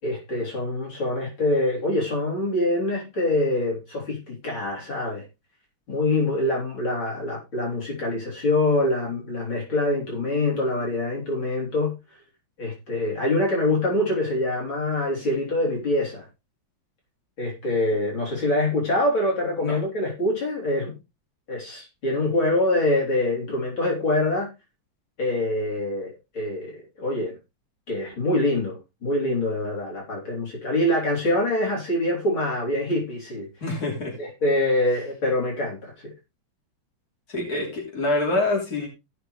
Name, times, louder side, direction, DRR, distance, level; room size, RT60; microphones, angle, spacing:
voice 1, 0.0-5.2 5.9-11.9 12.6-16.3 17.4-20.9 21.5-24.5 25.2-27.4 27.9-33.5 34.2-36.1, left 1 dB, 85° left, 4.7 m, -25 dB
voice 2, 33.6-34.1 37.3-38.9, left 2 dB, 45° left, 4.0 m, -26 dB
16.5 x 6.2 x 3.3 m
omnidirectional pair, 2.2 m